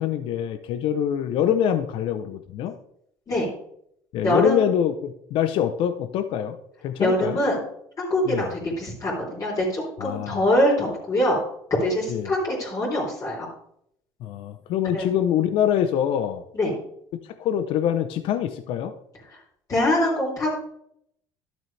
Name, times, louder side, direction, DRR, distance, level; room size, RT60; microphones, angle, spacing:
voice 1, 0.0-2.7 4.1-6.5 6.8-7.4 8.2-8.5 10.0-10.4 12.1-12.3 14.2-16.4 17.4-18.9, left 9 dB, 65° left, 9 dB, 0.8 m, -24 dB
voice 2, 4.2-4.7 7.0-7.6 8.0-11.4 11.8-13.5 14.8-15.1 16.5-16.7 19.3-19.4 19.7-20.5, left 1 dB, 35° left, -4 dB, 3.5 m, -24 dB
12.0 x 7.4 x 3.3 m, 0.71 s
cardioid pair, 120°, 10 cm